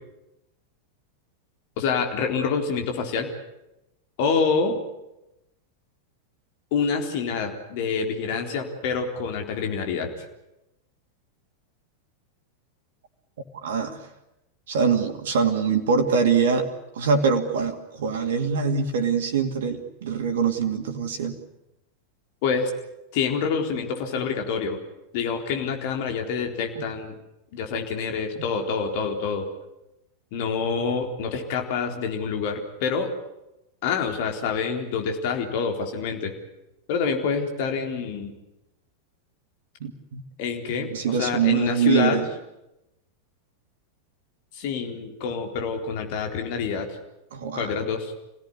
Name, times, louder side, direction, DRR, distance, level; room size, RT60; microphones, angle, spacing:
voice 1, 1.8-3.3 4.2-4.8 6.7-10.1 22.4-22.7 23.1-24.8 25.1-27.1 27.5-29.5 30.3-33.1 33.8-36.3 36.9-38.3 40.4-42.2 44.5-47.0 47.5-48.1, left 5 dB, 50° left, 4 dB, 4.1 m, -27 dB
voice 2, 13.5-14.1 14.7-16.7 16.9-21.4 26.8-26.9 39.8-40.2 40.8-42.3 47.3-47.8, right 6 dB, 60° right, 5 dB, 2.5 m, -24 dB
27.0 x 17.0 x 9.9 m, 0.92 s
figure-of-eight pair, 90°, 0 cm